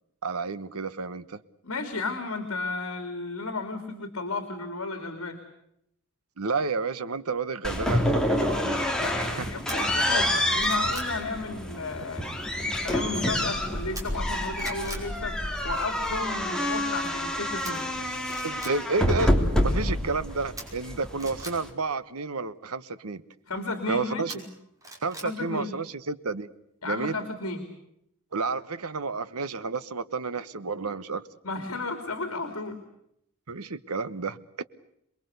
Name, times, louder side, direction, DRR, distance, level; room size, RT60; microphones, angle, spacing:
voice 1, 0.2-1.4 6.4-8.8 9.1-9.5 18.4-19.4 19.6-23.2 23.9-24.4 25.0-26.5 26.8-27.2 28.3-31.3 33.5-34.6, right 4 dB, 90° right, 14 dB, 1.2 m, -31 dB
voice 2, 1.6-5.4 9.0-12.3 12.8-17.9 23.5-24.3 25.2-25.7 26.8-27.7 31.4-32.8, left 3 dB, 70° left, 7 dB, 3.0 m, -33 dB
sound 1, 7.6-21.7, left 1 dB, 5° left, 3.0 m, -28 dB
sound 2, 9.7-9.8 10.3-11.1 13.9-14.3 14.6-15.1 17.6-17.7 18.2-18.7 20.6-21.5 24.3-25.3 25.7-25.8, right 2 dB, 15° right, 5.5 m, -40 dB
27.5 x 22.0 x 8.1 m, 0.76 s
head